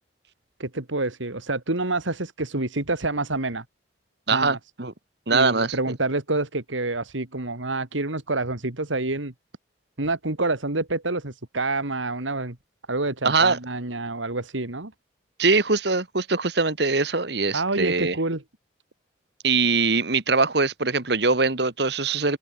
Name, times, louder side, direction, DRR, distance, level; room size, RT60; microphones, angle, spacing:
voice 1, 0.6-3.6 4.3-4.6 5.3-9.3 10.0-12.6 12.9-14.9 17.5-18.4, right 2 dB, 85° right, 2.6 m, -27 dB
voice 2, 4.3-4.9 5.3-5.8 13.2-13.6 15.4-18.2 19.4-22.4, right 4 dB, 60° right, 1.6 m, -22 dB
open air
head